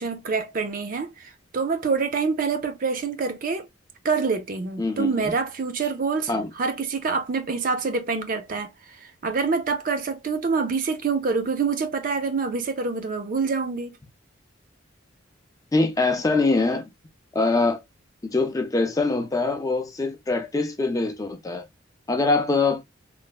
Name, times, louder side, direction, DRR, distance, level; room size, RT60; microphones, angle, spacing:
voice 1, 0.0-3.7 4.0-6.3 6.6-14.0, right 4 dB, 45° right, 0.5 m, -26 dB
voice 2, 4.8-5.3 6.3-6.5 15.7-16.9 17.3-17.8 18.3-21.6 22.1-22.8, left 3 dB, 20° left, 0.4 m, -23 dB
3.1 x 2.0 x 2.2 m
head